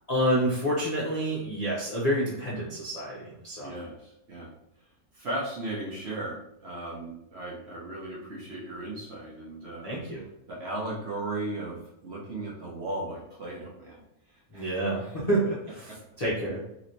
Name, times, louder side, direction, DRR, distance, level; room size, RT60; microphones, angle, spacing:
voice 1, 0.1-3.7 9.8-10.2 14.5-16.6, right 1 dB, 40° left, -8 dB, 0.6 m, -28 dB
voice 2, 3.6-4.5 5.1-9.9 10.5-14.0 14.3-15.1, right 2 dB, 55° right, -4 dB, 0.9 m, -36 dB
3.1 x 3.1 x 2.7 m, 0.80 s
omnidirectional pair, 1.6 m